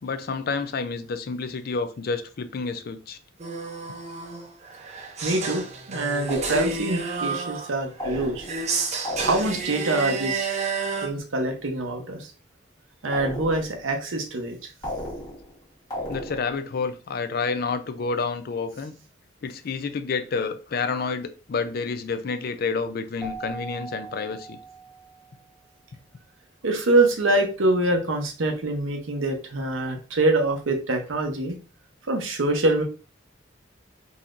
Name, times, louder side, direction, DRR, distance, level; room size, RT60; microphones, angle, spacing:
voice 1, 0.0-3.2 16.1-18.9 19.4-24.6, left 4 dB, 50° left, 0.4 m, -29 dB
sound 1, 3.4-11.1, right 4 dB, 35° right, 0.6 m, -30 dB
voice 2, 5.2-8.5 9.2-10.7 11.0-12.3 13.0-14.7 26.6-31.6 32.1-32.8, right 2 dB, 85° right, 0.8 m, -25 dB
sound 2, 6.3-7.0 8.0-8.7 9.0-9.8 13.1-13.8 14.8-15.6 15.9-16.6, left 1 dB, 20° left, 1.2 m, -34 dB
Keyboard (musical), 23.2-25.5, right 4 dB, ahead, 0.9 m, -40 dB
4.0 x 2.9 x 2.5 m
head